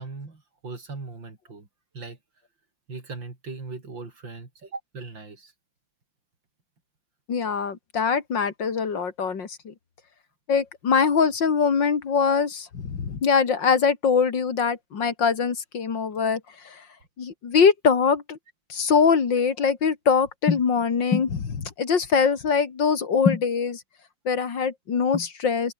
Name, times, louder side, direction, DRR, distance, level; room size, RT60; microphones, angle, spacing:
voice 1, 0.0-1.7 1.9-2.2 2.9-5.5, right 3 dB, 70° right, 5.1 m, -39 dB
voice 2, 7.3-9.7 10.5-16.8 17.2-18.4 18.7-23.8 24.3-25.7, left 6 dB, 65° left, 2.9 m, -23 dB
omnidirectional pair, 2.1 m